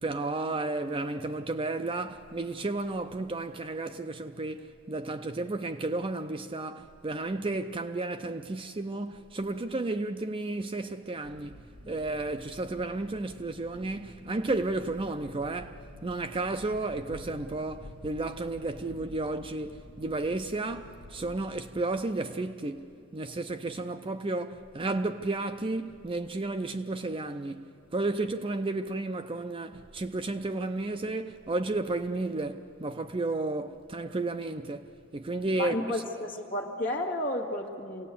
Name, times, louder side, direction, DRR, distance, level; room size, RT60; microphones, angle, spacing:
voice 1, 0.0-35.8, right 2 dB, 25° right, 0.5 m, -33 dB
sound 1, 11.2-21.4, equal, 70° right, 7.6 m, -50 dB
voice 2, 35.6-38.1, left 1 dB, 40° left, 2.1 m, -32 dB
26.5 x 18.0 x 8.4 m
head